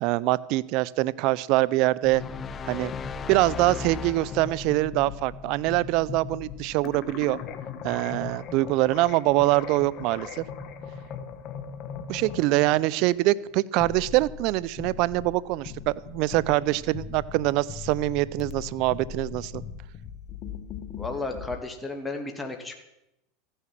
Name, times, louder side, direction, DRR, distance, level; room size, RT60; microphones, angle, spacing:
voice 1, 0.0-2.2 2.7-2.9 3.3-7.4 7.8-10.4 12.1-19.6, right 18 dB, 55° right, 21 dB, 0.5 m, -24 dB
sound 1, 2.0-21.6, left 6 dB, 45° left, 1.5 m, -40 dB
sound 2, 2.1-4.9, left 7 dB, 30° left, 0.5 m, -37 dB
voice 2, 21.0-22.8, left 3 dB, 10° left, 3 dB, 2.2 m, -33 dB
15.0 x 9.9 x 7.5 m, 0.87 s
supercardioid pair, 115°, 0 cm